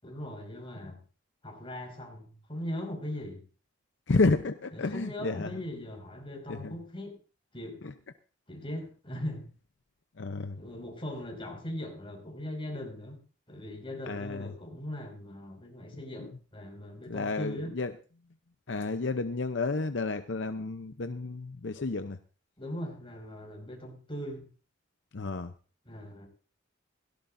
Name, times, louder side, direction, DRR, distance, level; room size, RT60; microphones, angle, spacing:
voice 1, 0.0-1.0 1.4-3.5 4.7-7.2 7.5-7.9 8.5-9.5 10.6-13.2 13.5-17.7 22.6-24.5 25.9-26.3, left 1 dB, 25° left, 2 dB, 5.3 m, -39 dB
voice 2, 4.1-5.5 6.5-6.8 7.8-7.9 10.2-10.6 14.1-14.5 16.2-16.3 17.1-17.9 18.7-22.2 25.1-25.5, left 3 dB, 65° left, 9 dB, 0.7 m, -31 dB
17.0 x 17.0 x 2.6 m, 0.38 s
head